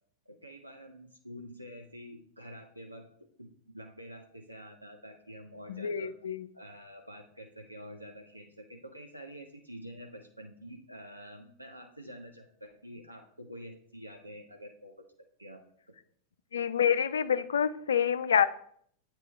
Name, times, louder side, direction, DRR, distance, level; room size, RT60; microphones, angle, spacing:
voice 1, 0.3-3.1 3.4-6.1 6.5-15.0 15.4-15.6, equal, 85° right, 3 dB, 0.5 m, -47 dB
voice 2, 5.7-6.5 16.5-18.5, left 8 dB, 65° left, 14 dB, 0.3 m, -27 dB
8.2 x 3.0 x 4.3 m, 0.64 s
figure-of-eight pair, 90°, 0 cm